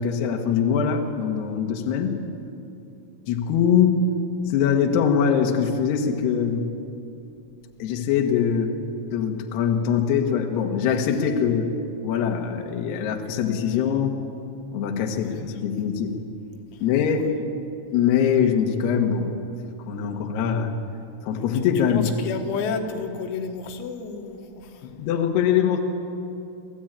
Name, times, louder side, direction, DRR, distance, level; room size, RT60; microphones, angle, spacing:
voice 1, 0.0-2.2 3.3-4.0 4.5-6.6 7.8-8.7 9.1-11.7 12.0-14.1 14.7-16.1 16.8-17.3 17.9-19.3 19.9-20.7 21.2-22.1 24.8-25.8, left 7 dB, 65° left, 3 dB, 3.2 m, -22 dB
voice 2, 15.1-15.5 21.9-24.4, left 5 dB, 85° left, 4 dB, 4.2 m, -31 dB
27.0 x 15.5 x 9.0 m, 2.7 s
omnidirectional pair, 6.0 m